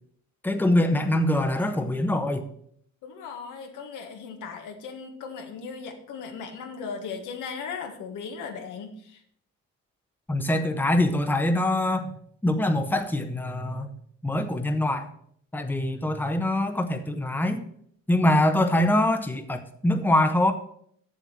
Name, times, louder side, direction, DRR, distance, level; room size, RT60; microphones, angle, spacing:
voice 1, 0.4-2.5 10.3-12.1 12.4-13.9 14.2-15.1 15.5-17.6 18.1-20.5, left 1 dB, 5° left, 7 dB, 1.0 m, -24 dB
voice 2, 3.0-9.2, left 5 dB, 85° left, 4 dB, 1.6 m, -37 dB
7.4 x 6.9 x 5.9 m, 0.65 s
cardioid pair, 90°, 30 cm